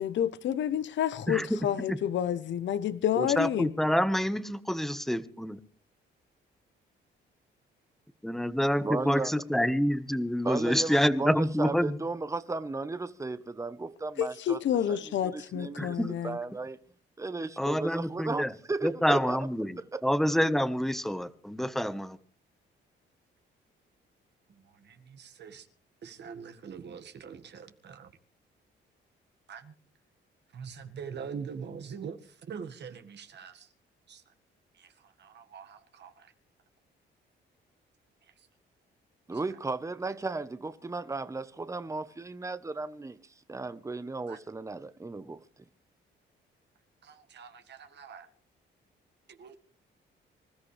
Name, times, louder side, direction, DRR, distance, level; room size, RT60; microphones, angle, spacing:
voice 1, 0.0-3.7 14.2-16.4, left 9 dB, 70° left, 0.9 m, -29 dB
voice 2, 1.3-2.0 3.2-5.6 8.2-12.0 15.8-16.1 17.6-18.5 18.8-22.2, equal, ahead, 1.3 m, -27 dB
voice 3, 8.8-9.3 10.4-14.6 14.9-16.0 16.2-16.8 17.2-19.5 19.8-20.0 39.3-45.4, right 3 dB, 15° right, 1.0 m, -35 dB
voice 4, 24.5-25.7 26.0-28.1 29.5-29.7 30.5-33.7 34.1-34.2 34.7-36.3 38.2-38.5 39.3-39.4 44.3-44.4 47.0-48.3 49.3-49.5, right 6 dB, 60° right, 1.8 m, -44 dB
26.0 x 14.0 x 3.4 m
cardioid pair, 90°, 20 cm